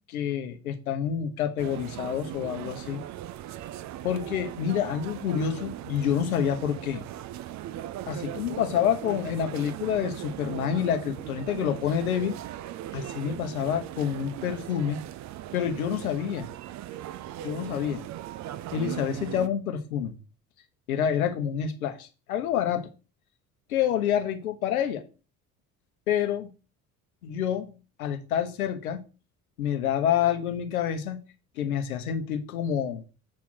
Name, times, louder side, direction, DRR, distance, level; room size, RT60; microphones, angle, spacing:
voice 1, 0.1-3.0 4.0-7.0 8.1-12.4 12.9-15.0 15.5-16.5 17.4-18.0 18.7-20.2 20.9-22.9 23.7-25.0 26.1-26.5 27.2-29.0 29.6-31.2 31.6-33.0, left 9 dB, 80° left, 1.1 m, -28 dB
sound 1, 1.6-19.5, right 13 dB, 40° right, 0.5 m, -39 dB
7.4 x 3.6 x 6.2 m
hypercardioid pair, 60°, 42 cm